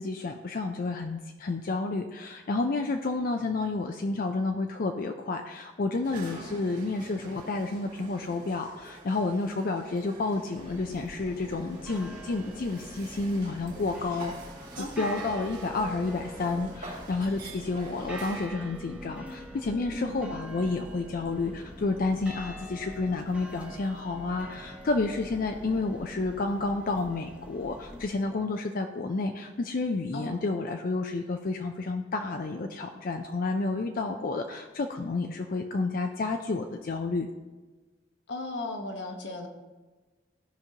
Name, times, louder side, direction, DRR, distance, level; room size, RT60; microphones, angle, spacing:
voice 1, 0.0-14.3 15.0-37.3, left 3 dB, 50° left, 5 dB, 0.5 m, -30 dB
sound 1, 6.0-18.5, right 2 dB, 45° right, 2.2 m, -46 dB
voice 2, 6.3-6.7 11.9-12.0 14.8-15.2 19.9-20.3 30.1-30.4 38.3-39.5, left 2 dB, 80° left, 3 dB, 1.2 m, -36 dB
sound 2, 10.6-28.0, right 1 dB, 5° right, 0.9 m, -44 dB
15.5 x 5.1 x 2.8 m, 1.3 s
head